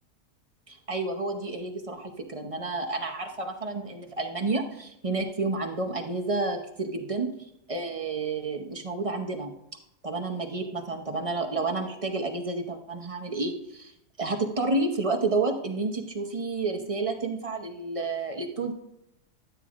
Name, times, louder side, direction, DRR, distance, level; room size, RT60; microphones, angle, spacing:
voice 1, 0.7-7.3 7.7-9.5 10.0-13.9 14.2-18.7, right 3 dB, 35° right, 1 dB, 0.6 m, -30 dB
12.0 x 8.9 x 2.5 m, 0.80 s
omnidirectional pair, 1.6 m